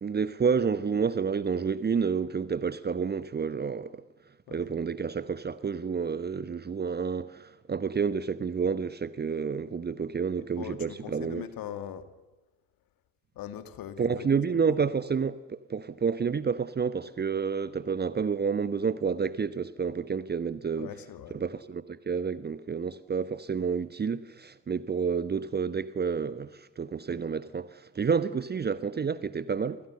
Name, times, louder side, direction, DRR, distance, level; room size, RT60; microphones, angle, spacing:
voice 1, 0.0-4.0 4.5-11.4 14.0-20.9 21.3-29.8, right 6 dB, 20° right, 1.0 m, -29 dB
voice 2, 10.6-12.1 13.3-14.4 14.7-14.8 20.8-21.4, left 10 dB, 50° left, 2.5 m, -41 dB
28.5 x 25.5 x 6.7 m
figure-of-eight pair, 50°, 45 cm